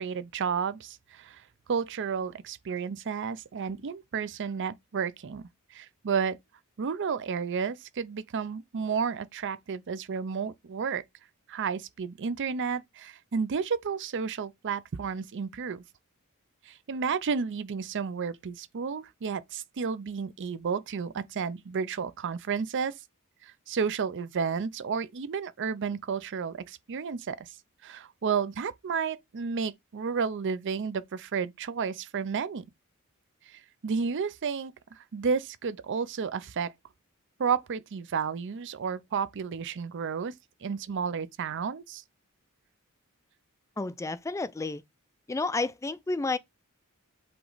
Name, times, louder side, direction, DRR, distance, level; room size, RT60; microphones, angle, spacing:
voice 1, 0.0-1.4 1.7-6.4 6.8-11.0 11.5-15.8 16.7-22.9 23.4-27.5 27.8-32.6 33.5-36.7 37.4-40.3 40.6-42.0, right 6 dB, 55° right, 0.5 m, -32 dB
voice 2, 43.8-44.8 45.3-46.4, left 3 dB, 15° left, 0.3 m, -31 dB
7.7 x 3.1 x 3.9 m
head